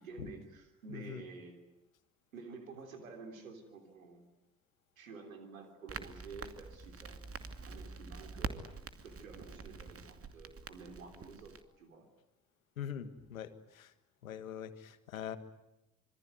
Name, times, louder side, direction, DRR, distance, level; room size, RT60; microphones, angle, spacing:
voice 1, 0.0-1.6 2.3-4.2 5.0-7.2 7.6-8.7 9.0-12.1, right 4 dB, 90° right, 6 dB, 3.4 m, -50 dB
voice 2, 0.9-1.2 12.8-13.9 14.2-15.4, left 9 dB, 90° left, 12 dB, 1.6 m, -43 dB
Crackle, 5.9-11.6, right 4 dB, 35° right, 2.5 m, -45 dB
26.5 x 23.5 x 9.4 m, 0.89 s
hypercardioid pair, 50°, 40 cm